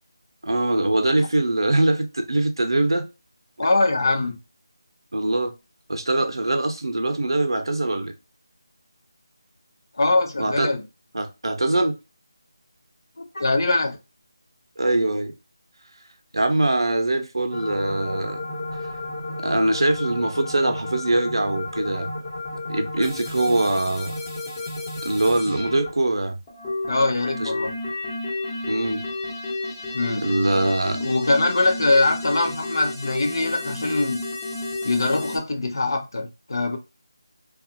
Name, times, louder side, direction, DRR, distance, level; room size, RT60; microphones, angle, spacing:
voice 1, 0.4-3.1 5.1-5.5 5.9-8.1 10.4-10.7 11.1-11.9 14.8-15.3 16.3-18.4 19.4-22.1 22.7-24.1 25.0-26.4 27.4-27.5 28.7-29.1 30.2-31.0, right 2 dB, 85° right, 0.7 m, -22 dB
voice 2, 3.6-4.4 10.0-10.8 13.2-14.0 26.9-27.7 29.9-30.2 31.0-34.2 34.8-36.8, left 2 dB, 65° left, 0.8 m, -22 dB
sound 1, 17.5-25.9 26.5-35.4, left 2 dB, 20° left, 1.0 m, -32 dB
2.4 x 2.4 x 2.7 m
figure-of-eight pair, 170°, 2 cm